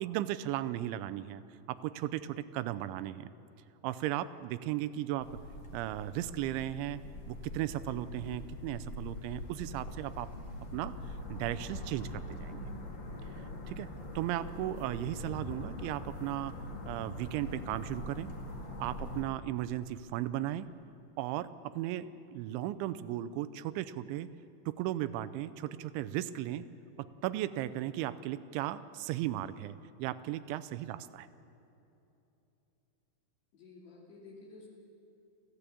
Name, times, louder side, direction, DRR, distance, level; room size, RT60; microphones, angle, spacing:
voice 1, 0.0-1.4 1.7-3.3 3.8-5.3 5.7-7.0 7.3-10.3 10.7-10.9 11.3-12.7 13.7-13.9 14.2-16.5 16.9-18.3 18.8-20.7 21.2-24.3 24.7-26.6 27.0-31.3, right 13 dB, 85° right, 14 dB, 3.1 m, -36 dB
sound 1, 5.2-19.2, left 1 dB, 45° left, 1.5 m, -43 dB
voice 2, 33.5-34.7, left 3 dB, 65° left, -4 dB, 4.9 m, -52 dB
28.0 x 15.0 x 8.5 m, 2.9 s
omnidirectional pair, 5.4 m